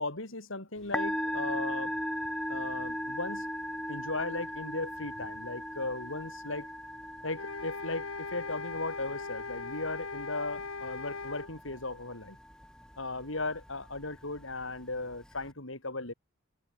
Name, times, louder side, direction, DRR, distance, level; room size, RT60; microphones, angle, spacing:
voice 1, 0.0-1.9 2.5-3.5 3.9-6.7 7.2-12.4 13.0-16.1, left 2 dB, 70° left, 4.5 m, -37 dB
Musical instrument, 0.8-15.5, equal, 5° left, 4.5 m, -39 dB
sound 1, 7.3-11.5, left 4 dB, 90° left, 2.7 m, -39 dB
open air
head